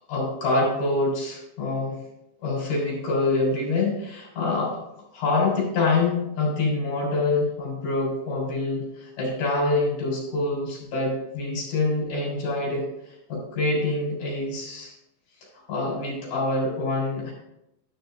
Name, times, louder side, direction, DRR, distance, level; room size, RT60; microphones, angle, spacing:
voice 1, 0.1-2.0 2.4-4.8 5.1-14.9 15.7-17.3, left 2 dB, 45° left, -3 dB, 4.9 m, -26 dB
11.5 x 5.6 x 3.8 m, 0.85 s
omnidirectional pair, 5.7 m